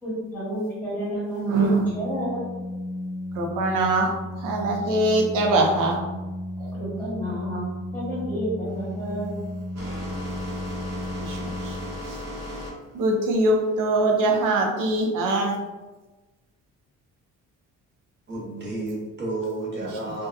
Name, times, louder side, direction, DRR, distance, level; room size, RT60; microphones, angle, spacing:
voice 1, 0.0-1.7 1.9-2.5 6.7-9.4, equal, 5° left, -8 dB, 1.0 m, -30 dB
voice 2, 1.4-1.9 3.3-4.1 4.4-6.0 6.6-6.8 11.2-11.8 12.0-12.2 12.9-15.6 19.8-20.1, right 2 dB, 80° right, 1 dB, 0.6 m, -23 dB
Organ, 1.5-12.3, left 1 dB, 30° left, 0.4 m, -34 dB
sound 1, 8.7-14.5, left 1 dB, 60° right, 1.0 m, -37 dB
voice 3, 18.3-20.3, right 2 dB, 35° right, -4 dB, 0.8 m, -31 dB
2.7 x 2.2 x 2.3 m, 1.2 s
cardioid pair, 150°, 31 cm